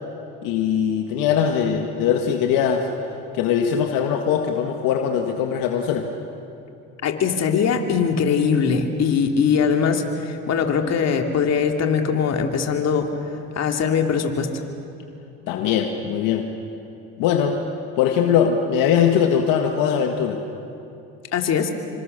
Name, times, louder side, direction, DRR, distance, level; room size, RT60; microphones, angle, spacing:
voice 1, 0.4-2.9 3.3-6.1 15.5-16.5 17.2-17.6 18.0-20.4, left 8 dB, 75° left, 3 dB, 1.9 m, -21 dB
voice 2, 7.0-13.1 13.5-14.6 21.3-21.7, left 6 dB, 50° left, 4 dB, 2.9 m, -21 dB
28.0 x 25.5 x 6.8 m, 2.8 s
supercardioid pair, 95°, 33 cm